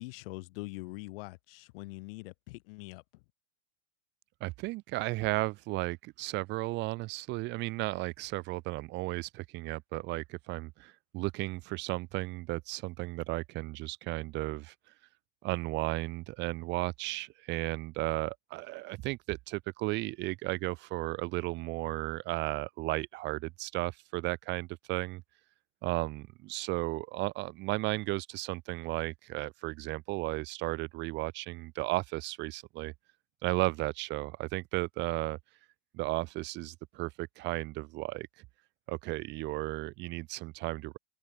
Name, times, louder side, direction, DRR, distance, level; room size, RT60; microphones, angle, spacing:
voice 1, 0.0-3.3, left 24 dB, 45° left, 5.2 m, -43 dB
voice 2, 4.4-14.7 15.4-25.2 25.8-32.9 33.4-35.4 35.9-38.3 38.9-41.0, right 21 dB, 25° right, 1.5 m, -34 dB
open air
supercardioid pair, 175°, 40 cm